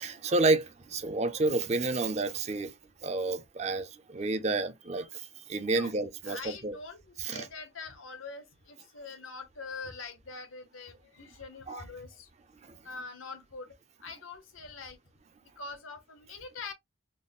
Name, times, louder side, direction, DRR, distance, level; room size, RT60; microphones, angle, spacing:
voice 1, 0.0-2.7 3.0-5.2 5.5-6.8 7.2-7.5 11.7-11.8, right 3 dB, 35° right, 0.5 m, -30 dB
voice 2, 6.3-12.3 12.8-13.7 14.0-15.0 15.6-16.7, left 4 dB, 85° left, 1.0 m, -44 dB
4.0 x 2.1 x 3.5 m
head